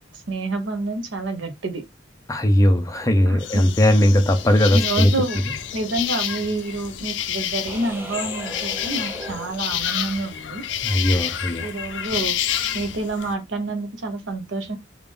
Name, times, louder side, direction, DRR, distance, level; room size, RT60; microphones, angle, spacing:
voice 1, 0.1-1.8 3.2-3.6 4.7-5.4 5.7-10.6 11.6-12.4 12.7-14.8, right 2 dB, 85° right, 0.9 m, -28 dB
voice 2, 2.3-5.1 10.8-11.7, left 1 dB, 20° left, 0.6 m, -18 dB
sound 1, 3.4-13.3, left 10 dB, 70° left, 0.4 m, -29 dB
sound 2, 7.7-10.3, equal, 10° right, 0.8 m, -37 dB
3.5 x 2.5 x 3.4 m
head